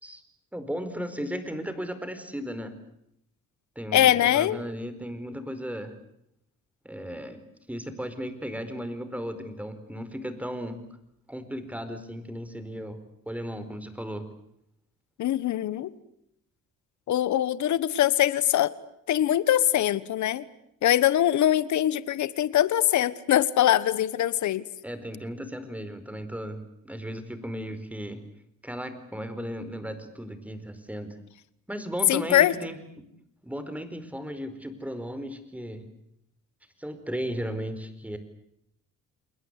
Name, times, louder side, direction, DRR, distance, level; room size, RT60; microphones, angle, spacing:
voice 1, 0.5-2.7 3.8-5.9 6.8-7.4 7.7-10.8 11.3-13.0 13.3-14.2 24.8-28.2 28.6-31.1 31.7-33.0 33.4-35.8 36.8-38.2, equal, 5° right, 11 dB, 4.6 m, -35 dB
voice 2, 3.9-4.6 15.2-15.9 17.1-18.7 19.1-20.4 20.8-24.6 32.1-32.5, left 12 dB, 70° left, 17 dB, 1.4 m, -22 dB
29.5 x 21.5 x 8.3 m, 0.76 s
cardioid pair, 90°, 30 cm